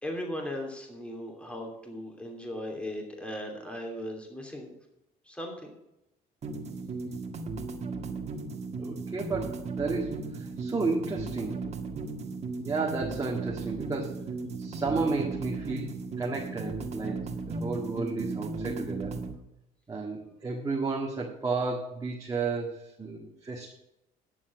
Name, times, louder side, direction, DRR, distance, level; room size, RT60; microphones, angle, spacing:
voice 1, 0.0-4.8 5.3-5.7, left 1 dB, 5° left, 1 dB, 2.8 m, -37 dB
sound 1, 6.4-19.3, right 3 dB, 40° right, 1.9 m, -36 dB
voice 2, 8.8-11.6 12.6-14.2 14.6-19.2 19.9-23.7, right 3 dB, 20° right, -2 dB, 1.7 m, -32 dB
9.9 x 7.2 x 7.2 m, 0.87 s
cardioid pair, 110°, 17 cm